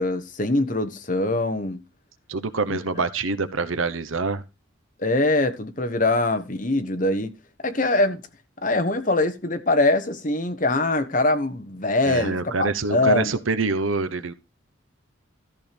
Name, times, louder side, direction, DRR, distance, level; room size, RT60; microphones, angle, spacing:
voice 1, 0.0-1.8 2.7-2.8 5.0-7.3 7.6-8.2 8.6-13.4, left 2 dB, 40° left, 1.3 m, -23 dB
voice 2, 2.3-4.4 12.1-14.3, right 3 dB, 85° right, 1.0 m, -25 dB
13.5 x 4.6 x 5.2 m
head